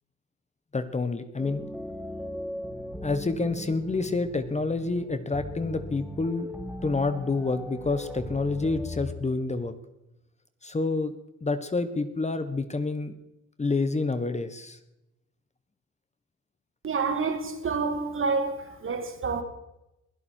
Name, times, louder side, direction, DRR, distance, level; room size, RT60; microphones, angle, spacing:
voice 1, 0.7-1.6 3.0-6.5 6.8-9.7 10.6-11.1 11.4-13.1 13.6-14.8, left 3 dB, 20° left, 1.2 m, -28 dB
sound 1, 1.4-9.1, left 1 dB, 5° right, 2.2 m, -38 dB
voice 2, 16.8-19.4, right 4 dB, 45° right, 2.4 m, -28 dB
22.0 x 12.0 x 4.5 m
cardioid pair, 90°, 30 cm